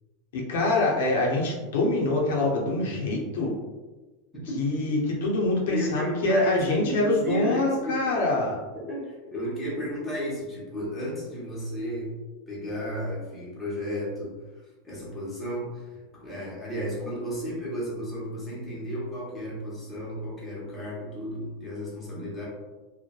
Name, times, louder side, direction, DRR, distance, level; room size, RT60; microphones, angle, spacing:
voice 1, 0.3-3.6 4.6-8.6, left 2 dB, 75° left, -2 dB, 0.6 m, -25 dB
voice 2, 4.3-4.9 5.7-8.0 8.7-12.2 12.5-14.4 14.8-22.5, equal, 10° left, -7 dB, 0.6 m, -33 dB
3.0 x 2.1 x 2.2 m, 1.2 s
supercardioid pair, 175°, 0 cm